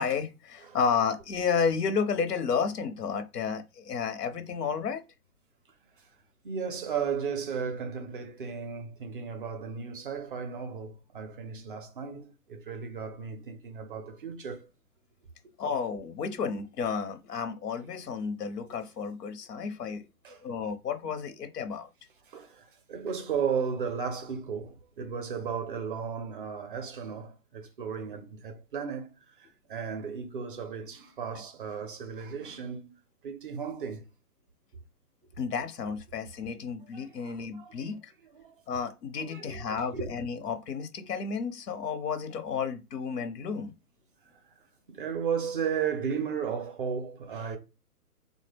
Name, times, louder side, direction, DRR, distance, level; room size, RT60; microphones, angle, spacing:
voice 1, 0.0-5.0 15.6-20.0 20.4-21.9 35.4-38.1 38.7-43.7, left 6 dB, 80° left, 0.8 m, -32 dB
voice 2, 6.4-14.7 20.2-20.4 22.3-29.1 29.4-32.9 33.2-34.0 36.9-37.8 38.3-38.5 39.3-40.1 44.9-47.6, right 6 dB, 35° right, 0.5 m, -35 dB
3.6 x 2.1 x 3.2 m
hypercardioid pair, 135°, 47 cm